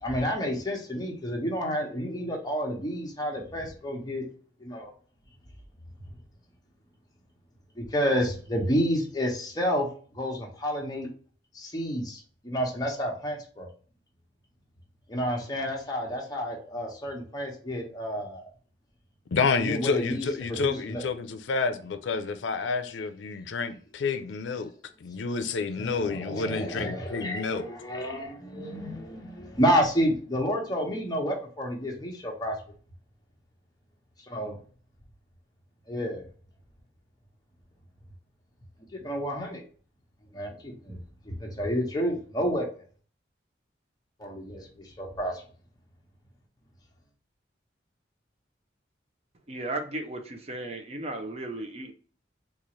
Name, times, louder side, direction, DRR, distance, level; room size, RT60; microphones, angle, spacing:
voice 1, 0.0-4.3 4.6-4.9 7.8-11.1 11.5-13.7 15.1-18.5 19.6-21.0 25.7-32.6 34.3-34.6 35.9-36.2 38.9-39.6 40.3-41.0 41.2-42.7 44.2-45.4, equal, 20° left, 0.9 m, -30 dB
voice 2, 19.3-24.7 25.0-27.7, left 4 dB, 85° left, 0.4 m, -29 dB
voice 3, 49.5-51.9, right 2 dB, 35° right, 0.6 m, -35 dB
4.0 x 2.4 x 3.0 m
head